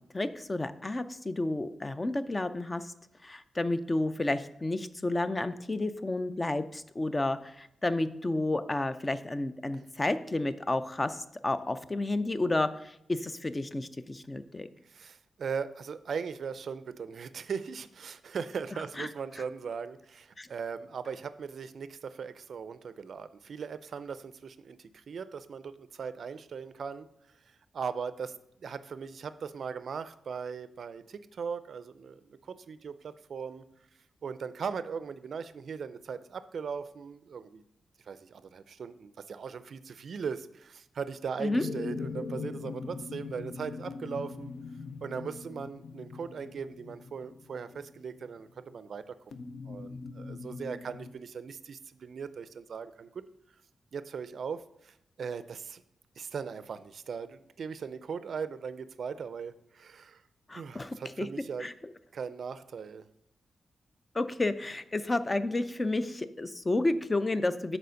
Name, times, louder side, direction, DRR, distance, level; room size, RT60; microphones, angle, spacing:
voice 1, 0.1-2.9 3.2-14.7 19.0-19.1 20.4-20.5 41.4-41.6 60.5-61.3 61.6-61.7 64.1-67.8, left 2 dB, 20° left, 12 dB, 0.4 m, -31 dB
voice 2, 14.8-27.1 27.3-33.6 34.2-37.6 38.0-44.5 45.0-49.2 49.7-53.2 53.9-55.8 56.2-60.2 60.5-61.7 62.1-63.1, right 6 dB, 65° right, 13 dB, 0.4 m, -39 dB
sound 1, 41.5-48.4 49.3-51.1, left 4 dB, 75° left, 0.5 m, -41 dB
6.8 x 4.3 x 6.3 m, 0.77 s
wide cardioid pair, 120°, 0 cm